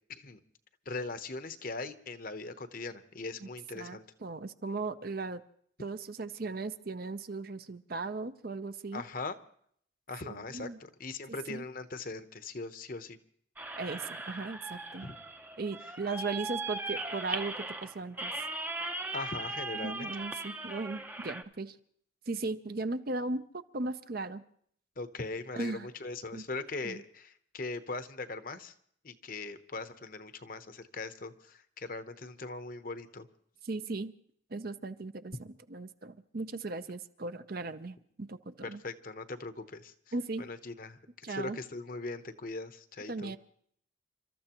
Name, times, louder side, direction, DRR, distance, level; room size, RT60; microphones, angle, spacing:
voice 1, 0.9-4.0 8.9-9.4 10.1-13.2 15.0-15.1 19.1-20.1 25.0-28.7 29.0-33.3 38.8-39.9 40.4-41.0 41.3-43.3, left 3 dB, 45° left, 10 dB, 0.9 m, -40 dB
voice 2, 3.7-5.4 5.8-9.0 10.2-10.8 11.5-11.6 13.8-15.1 15.6-18.3 19.7-21.8 22.3-23.4 23.7-24.4 25.6-25.9 26.3-26.4 26.8-27.0 33.6-34.1 34.5-38.8 40.1-40.5 41.2-41.6 43.1-43.4, right 3 dB, 50° right, 11 dB, 0.6 m, -37 dB
sound 1, 13.6-21.4, right 2 dB, 10° right, 0.6 m, -39 dB
29.5 x 13.5 x 3.0 m, 0.63 s
head